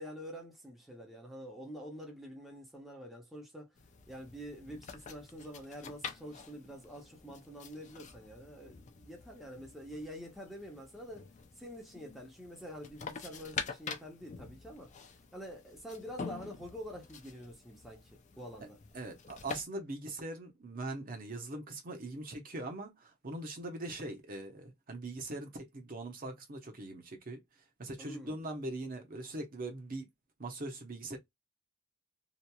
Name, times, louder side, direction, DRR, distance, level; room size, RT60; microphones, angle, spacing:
voice 1, 0.0-3.7 4.1-14.9 15.3-18.8 28.0-28.4, equal, ahead, 0.7 m, -47 dB
sound 1, 3.8-19.6, left 5 dB, 35° left, 0.4 m, -47 dB
voice 2, 18.9-27.4 27.8-30.1 30.4-31.2, right 2 dB, 40° right, 0.8 m, -41 dB
2.9 x 2.4 x 2.2 m
head